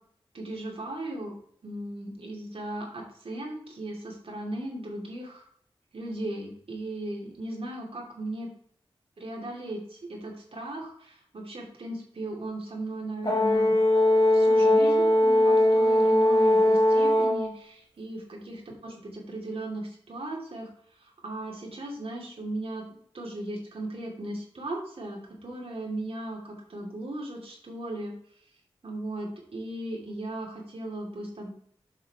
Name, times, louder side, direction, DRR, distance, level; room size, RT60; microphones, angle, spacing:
voice 1, 0.3-1.3 1.6-5.4 5.9-8.5 9.2-13.8 14.3-18.6 18.8-20.7 21.2-22.8 23.1-28.1 28.8-31.5, right 1 dB, 65° right, 0 dB, 2.6 m, -37 dB
Brass instrument, 13.2-17.5, left 1 dB, 40° left, 1.9 m, -20 dB
8.1 x 5.8 x 3.5 m, 0.62 s
cardioid pair, 45°, 10 cm